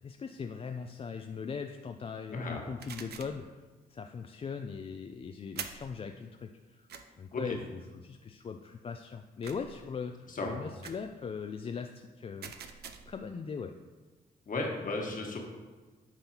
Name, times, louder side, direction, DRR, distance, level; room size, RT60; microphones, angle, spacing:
voice 1, 0.0-3.6 3.9-6.9 7.2-12.5 13.1-13.7, left 6 dB, 35° left, 5 dB, 0.3 m, -40 dB
voice 2, 2.3-2.6 7.3-7.6 10.3-10.5 14.5-15.4, left 2 dB, 50° left, 0 dB, 1.3 m, -34 dB
sound 1, 2.8-3.4 5.5-5.9 6.9-7.0 9.4-9.8 10.8-11.1 12.4-13.2, right 7 dB, 65° right, 0.5 m, -44 dB
8.8 x 3.9 x 2.8 m, 1.3 s
supercardioid pair, 60°, 18 cm